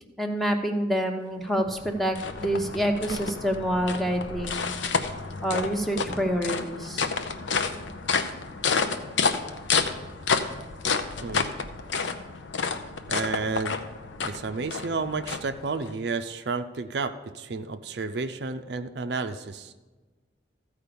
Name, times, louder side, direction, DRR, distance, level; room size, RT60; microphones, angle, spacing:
voice 1, 0.2-4.7 5.4-7.1, equal, ahead, 3 dB, 0.8 m, -27 dB
sound 1, 1.5-15.9, left 5 dB, 75° left, 0.7 m, -30 dB
voice 2, 13.1-13.7 14.2-19.7, right 4 dB, 60° right, 9 dB, 0.5 m, -31 dB
14.0 x 4.9 x 6.9 m, 1.3 s
head